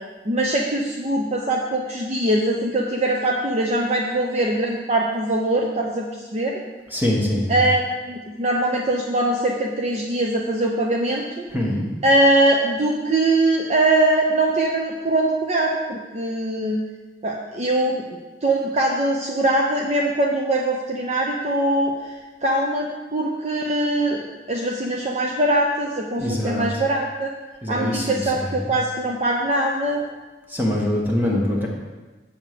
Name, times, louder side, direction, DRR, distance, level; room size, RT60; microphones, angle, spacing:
voice 1, 0.2-6.6 7.5-11.5 12.0-16.8 17.2-18.0 18.4-22.1 22.4-27.3 27.7-30.0, right 1 dB, 40° right, -1 dB, 0.7 m, -22 dB
voice 2, 6.9-7.7 11.5-11.9 26.2-26.7 27.6-28.7 30.5-31.7, left 1 dB, 10° right, -3 dB, 1.6 m, -24 dB
8.1 x 4.7 x 6.9 m, 1.2 s
head